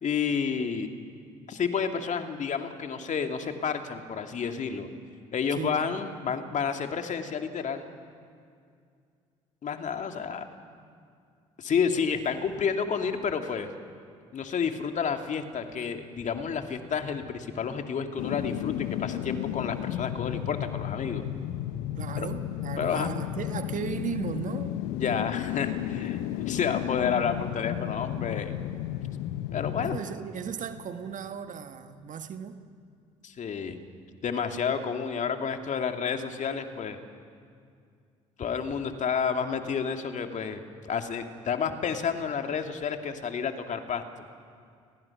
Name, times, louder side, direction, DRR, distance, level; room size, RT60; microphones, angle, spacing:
voice 1, 0.0-0.9 1.5-4.9 5.3-7.9 9.6-10.4 11.6-13.7 14.3-21.2 22.2-22.3 22.8-23.2 25.0-28.5 29.5-30.0 33.2-33.8 34.2-37.0 38.4-44.0, left 6 dB, 45° left, 5 dB, 2.3 m, -30 dB
voice 2, 5.6-5.9 22.0-24.7 29.8-32.6 38.9-39.0, right 7 dB, 50° right, 9 dB, 1.5 m, -36 dB
sound 1, 18.2-31.2 31.6-31.7, left 13 dB, 70° left, 0.8 m, -33 dB
29.0 x 21.0 x 6.0 m, 2.3 s
hypercardioid pair, 50°, 17 cm